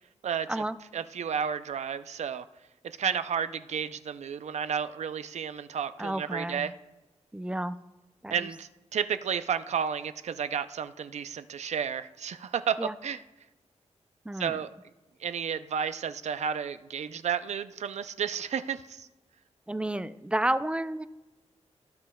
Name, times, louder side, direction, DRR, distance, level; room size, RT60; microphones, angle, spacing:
voice 1, 0.9-2.4 2.8-6.7 8.3-12.8 13.0-13.2 14.4-14.7 15.2-19.1, right 7 dB, 70° right, 12 dB, 0.4 m, -32 dB
voice 2, 6.0-6.7 7.3-7.8 8.2-8.5 12.8-13.0 14.3-14.6 19.7-21.1, right 1 dB, 10° right, 13 dB, 0.3 m, -31 dB
17.0 x 7.5 x 2.3 m, 1.1 s
wide cardioid pair, 135°, 12 cm